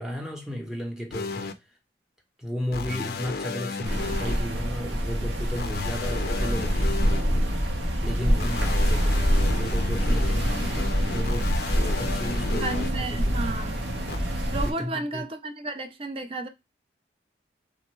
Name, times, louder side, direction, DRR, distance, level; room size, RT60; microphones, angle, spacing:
voice 1, 0.0-1.5 2.4-7.1 8.0-12.9 13.2-13.4 14.6-15.2, equal, 5° right, 0.8 m, -34 dB
sound 1, 1.1-1.5 2.7-4.4 5.6-7.2 8.4-12.9 14.1-14.2, left 5 dB, 55° left, 0.4 m, -33 dB
sound 2, 3.8-14.7, equal, 75° right, 0.9 m, -25 dB
voice 2, 12.5-13.8 14.5-16.5, right 2 dB, 30° right, 0.4 m, -33 dB
3.4 x 2.1 x 3.0 m
head